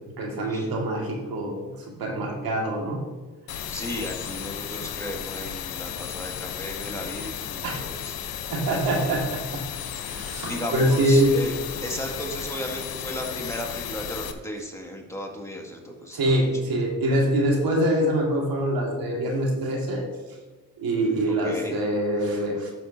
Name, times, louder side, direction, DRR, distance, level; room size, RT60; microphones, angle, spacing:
voice 1, 0.2-1.7 2.0-3.0 7.6-7.8 8.5-9.6 10.0-11.3 16.1-20.1 20.8-22.7, right 1 dB, 70° right, 0 dB, 2.0 m, -24 dB
sound 1, 3.5-14.3, left 9 dB, 70° left, 0.9 m, -34 dB
voice 2, 3.7-8.3 10.1-11.5 11.8-16.6 21.3-21.8, left 1 dB, 5° left, 0 dB, 2.0 m, -35 dB
12.5 x 6.6 x 2.7 m, 1.3 s
supercardioid pair, 65°, 38 cm